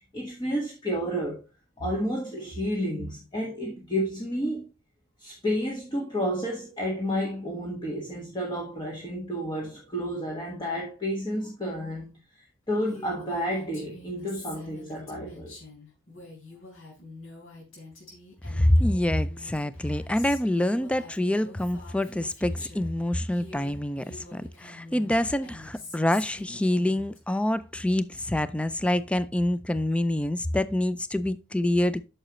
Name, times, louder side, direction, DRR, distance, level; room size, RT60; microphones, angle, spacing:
voice 1, 0.1-1.4 1.8-4.7 5.2-15.6, equal, 20° left, 1.5 m, -31 dB
Female speech woman speaking, 12.9-22.9 23.3-27.2, left 3 dB, 75° left, 4.3 m, -46 dB
voice 2, 18.5-32.0, left 1 dB, 5° left, 0.3 m, -26 dB
8.9 x 6.5 x 3.0 m
head